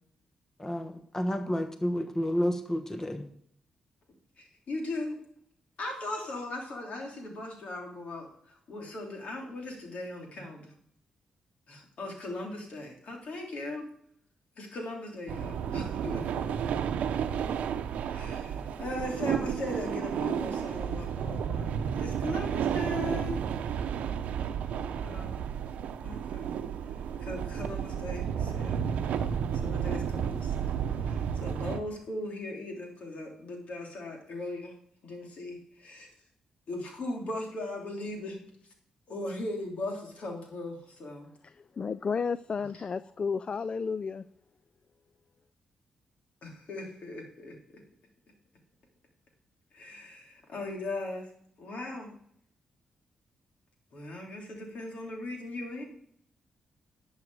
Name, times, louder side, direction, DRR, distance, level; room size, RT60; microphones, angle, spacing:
voice 1, 0.6-3.3, equal, 20° left, 1.2 m, -30 dB
voice 2, 4.4-5.2 5.8-10.7 11.7-13.9 14.5-16.8 18.1-23.4 25.0-25.4 26.0-26.6 26.9-34.7 35.0-36.1 36.7-38.4 39.1-41.3 42.6-42.8 46.4-47.8 49.7-51.3 51.6-52.1 53.9-55.8, left 2 dB, 65° left, 3.3 m, -39 dB
sound 1, 15.3-31.8, right 8 dB, 80° right, 0.7 m, -32 dB
voice 3, 41.8-44.2, left 5 dB, 45° left, 0.4 m, -32 dB
11.5 x 7.2 x 4.8 m
supercardioid pair, 55°, 2 cm